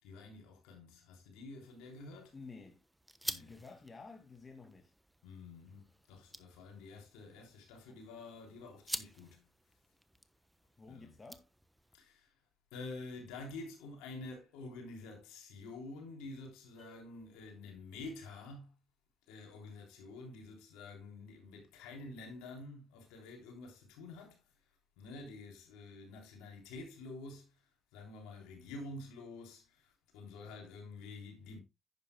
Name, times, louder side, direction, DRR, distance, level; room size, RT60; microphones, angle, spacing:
voice 1, 0.0-2.3 3.2-3.5 5.2-9.5 10.9-11.1 11.9-12.3 12.7-18.7 19.3-24.4 25.0-27.6 27.9-31.6, left 3 dB, 85° left, 3.4 m, -49 dB
sound 1, 1.6-12.0, right 1 dB, 5° right, 1.1 m, -49 dB
voice 2, 2.3-2.8 3.4-4.9 7.9-8.0 10.8-11.5, left 4 dB, 35° left, 2.3 m, -52 dB
sound 2, 16.8-18.0, right 5 dB, 30° right, 4.5 m, -64 dB
10.5 x 9.4 x 2.2 m
hypercardioid pair, 55°, 0 cm